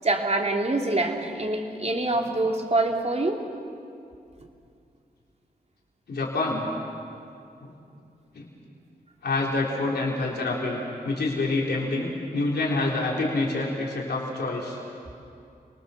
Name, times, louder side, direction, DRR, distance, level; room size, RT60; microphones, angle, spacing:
voice 1, 0.0-3.4, right 2 dB, 40° right, 1 dB, 3.2 m, -25 dB
voice 2, 6.1-6.7 7.6-7.7 8.3-8.5 9.2-14.8, left 2 dB, 85° left, -3 dB, 3.6 m, -27 dB
28.0 x 19.5 x 7.0 m, 2.5 s
cardioid pair, 45°, 17 cm